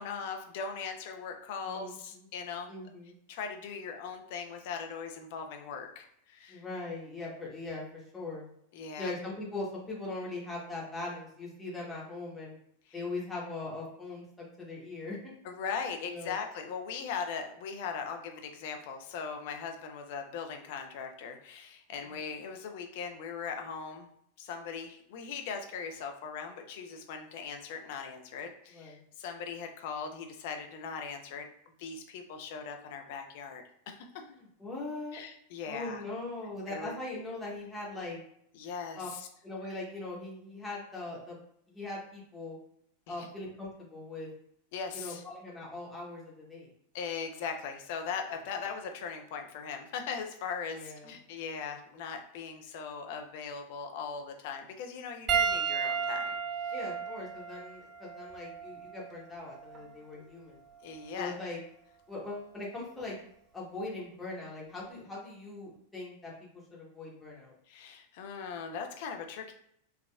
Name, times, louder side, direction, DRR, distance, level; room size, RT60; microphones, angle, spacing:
voice 1, 0.0-2.7 3.3-6.6 8.7-9.1 15.4-24.1 24.4-31.5 31.8-34.1 35.1-36.0 36.7-36.9 38.5-39.3 43.1-43.3 44.7-45.2 46.9-56.3 56.6-56.7 60.1-60.3 60.8-61.3 67.7-69.5, left 6 dB, 50° left, 5 dB, 0.4 m, -39 dB
voice 2, 1.6-2.2 2.7-3.1 6.5-8.4 9.0-12.6 12.9-15.2 16.1-16.4 28.7-29.0 34.2-35.2 35.6-38.2 38.9-39.1 39.4-41.4 41.7-42.6 43.1-44.3 44.9-46.7 50.7-51.1 56.7-60.6 61.1-61.6 62.1-63.2 63.5-66.3 66.7-67.5, left 2 dB, 10° left, -5 dB, 1.0 m, -40 dB
Piano, 55.3-60.0 60.9-61.1 63.0-63.1, right 6 dB, 30° right, 0.5 m, -33 dB
3.4 x 2.3 x 2.3 m, 0.70 s
figure-of-eight pair, 90°, 0 cm